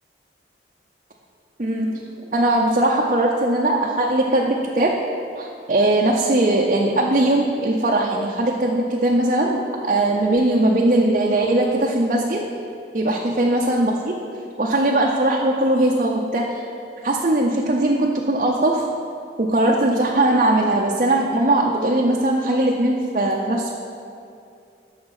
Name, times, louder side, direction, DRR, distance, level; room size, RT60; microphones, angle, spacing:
voice 1, 1.6-2.0 2.3-5.0 5.4-12.4 12.9-14.2 14.6-16.6 17.0-18.9 19.4-23.7, right 1 dB, 45° right, -2 dB, 0.7 m, -20 dB
12.5 x 6.5 x 4.9 m, 2.5 s
head